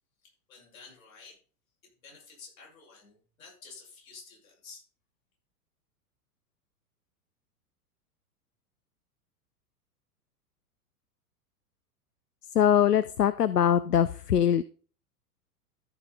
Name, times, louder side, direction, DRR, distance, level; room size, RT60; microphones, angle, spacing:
voice 1, 0.2-1.4 2.0-4.8, left 4 dB, 60° left, -2 dB, 6.4 m, -51 dB
voice 2, 12.5-14.6, left 9 dB, 80° left, 16 dB, 0.6 m, -22 dB
13.5 x 6.0 x 4.1 m, 0.39 s
figure-of-eight pair, 100°, 46 cm